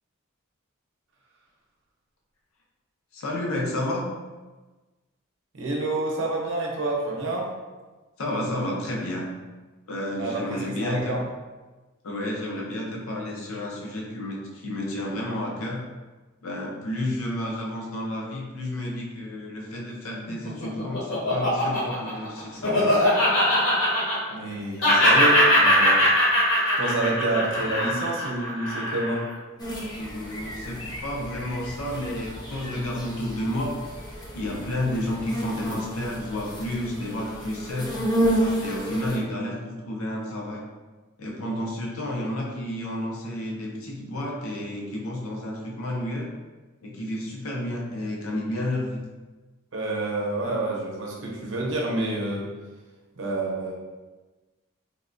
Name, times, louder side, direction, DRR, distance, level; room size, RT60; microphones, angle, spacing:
voice 1, 3.1-4.1 8.2-9.3 9.9-11.1 12.0-15.9 16.4-22.9 30.0-34.0 34.3-38.0 38.6-40.7 41.2-46.3 46.8-49.0, left 1 dB, 90° left, -2 dB, 0.6 m, -31 dB
voice 2, 5.5-7.5 10.2-11.2 24.3-26.1 26.8-29.3 49.7-52.5 53.2-53.7, right 2 dB, 60° right, -2 dB, 0.6 m, -28 dB
Laughter, 20.3-24.5 24.8-29.3, left 1 dB, 65° left, 1.0 m, -21 dB
sound 1, 29.6-39.2, equal, 20° left, 0.4 m, -31 dB
3.5 x 2.1 x 2.5 m, 1.2 s
head